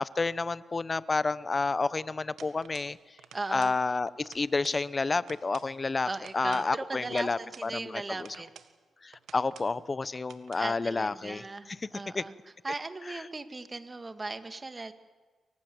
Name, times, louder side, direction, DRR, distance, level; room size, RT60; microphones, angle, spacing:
voice 1, 0.0-3.0 3.5-6.1 6.3-8.3 9.0-11.4 12.1-12.2, left 3 dB, 35° left, 17 dB, 1.0 m, -30 dB
sound 1, 2.4-2.9 3.2-3.8 4.1-4.8 5.1-5.7 6.2-7.7 8.2-8.7 9.1-9.7 10.1-10.7, right 8 dB, 85° right, 1.7 m, -52 dB
voice 2, 3.3-3.7 6.0-8.5 10.5-14.9, right 3 dB, 25° right, 10 dB, 2.0 m, -38 dB
29.0 x 24.5 x 7.9 m, 1.3 s
cardioid pair, 85°, 0 cm